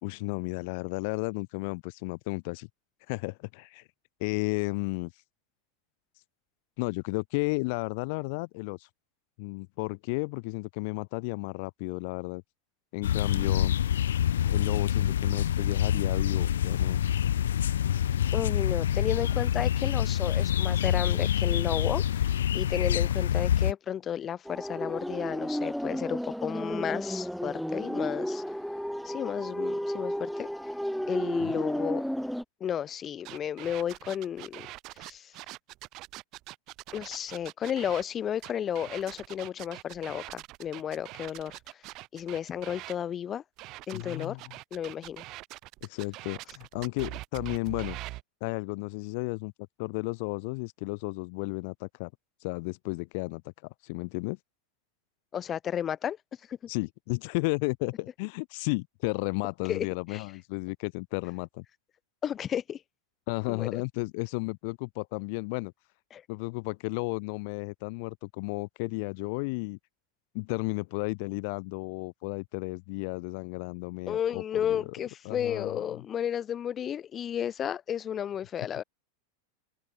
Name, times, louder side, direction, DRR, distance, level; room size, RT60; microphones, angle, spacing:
voice 1, 0.0-2.7 3.1-3.9 4.2-5.1 6.8-8.9 9.4-12.4 12.9-13.8 14.4-17.0 31.4-31.5 43.9-44.5 45.8-48.0 48.4-49.5 49.8-52.1 52.4-54.4 56.7-61.6 63.3-65.7 66.3-69.8 70.3-74.9 75.2-76.0, left 29 dB, 55° left, 0.8 m, -33 dB
sound 1, 13.0-23.7, left 10 dB, 75° left, 0.4 m, -26 dB
voice 2, 18.3-28.4 29.0-30.5 31.1-32.0 32.6-34.7 35.0-35.3 36.9-41.8 42.1-43.4 43.9-44.4 44.7-45.2 55.3-56.2 56.5-56.6 59.7-59.9 60.1-60.2 62.2-62.8 63.5-63.8 66.1-66.2 74.1-78.8, left 9 dB, 30° left, 1.1 m, -33 dB
sound 2, 24.4-32.4, equal, ahead, 0.4 m, -32 dB
sound 3, 33.3-38.0 38.4-43.0 43.6-48.2, right 19 dB, 45° right, 4.1 m, -43 dB
hypercardioid pair, 95°, 0 cm